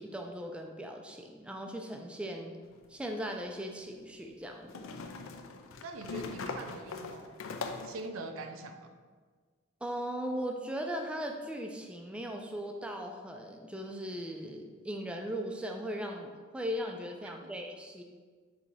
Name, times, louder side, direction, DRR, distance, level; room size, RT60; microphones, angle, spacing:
voice 1, 0.0-2.6 2.9-4.9 9.8-18.0, equal, 5° right, 2 dB, 0.3 m, -38 dB
sound 1, 2.7-2.8 4.7-8.1, left 4 dB, 75° left, 0.4 m, -41 dB
voice 2, 5.8-7.3 7.8-9.0 17.4-17.5, right 2 dB, 90° right, 6 dB, 0.4 m, -43 dB
4.5 x 2.8 x 3.9 m, 1.5 s
head